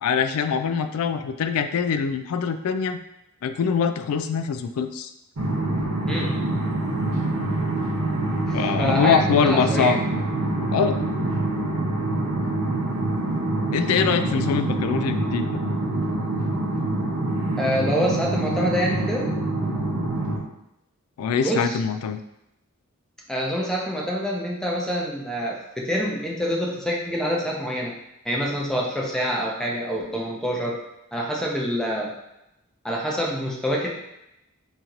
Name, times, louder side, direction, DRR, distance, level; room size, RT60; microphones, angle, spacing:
voice 1, 0.0-3.0 3.4-5.1 8.5-10.0 10.7-11.0 13.7-15.6 21.2-22.2, left 6 dB, 85° left, 10 dB, 0.3 m, -23 dB
sound 1, 5.4-20.4, right 2 dB, 90° right, 0.8 m, -25 dB
voice 2, 8.5-10.0 17.6-19.3 21.4-21.8 23.3-27.9 28.2-30.8 31.1-32.1 32.8-33.9, equal, 5° left, -2 dB, 0.5 m, -26 dB
3.0 x 2.8 x 3.7 m, 0.86 s
head